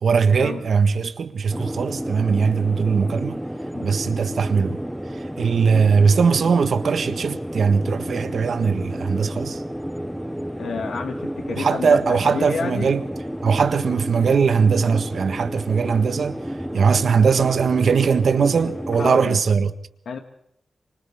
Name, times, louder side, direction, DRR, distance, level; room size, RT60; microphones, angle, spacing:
voice 1, 0.0-3.4 3.8-4.8 5.4-9.6 11.5-13.0 13.4-16.4 16.7-19.7, right 5 dB, 65° right, 1.6 m, -20 dB
sound 1, 1.5-19.1, equal, ahead, 1.0 m, -31 dB
voice 2, 10.6-12.9 19.0-19.4 20.1-20.2, left 5 dB, 75° left, 1.9 m, -30 dB
29.0 x 26.0 x 3.8 m
wide cardioid pair, 170°, 0 cm